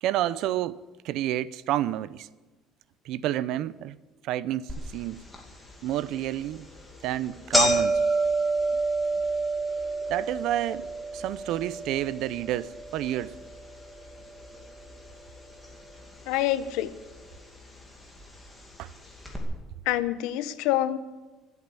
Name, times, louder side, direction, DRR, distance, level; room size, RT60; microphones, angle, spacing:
voice 1, 0.0-2.3 3.1-3.9 4.2-5.2 5.8-6.7 7.0-8.0 10.1-10.9 11.1-13.4 18.8-18.9, right 13 dB, 60° right, 0.6 m, -29 dB
sound 1, 4.7-4.8 5.3-5.4 6.3-6.5 6.8-6.9 7.1-15.4 15.6-16.4 17.2-17.3 18.2-18.3 18.6-18.7 19.2-19.4, right 2 dB, 5° left, 2.5 m, -29 dB
voice 2, 16.3-16.9 19.9-21.0, left 13 dB, 85° left, 0.9 m, -26 dB
24.0 x 8.4 x 7.0 m
cardioid pair, 165°, 0 cm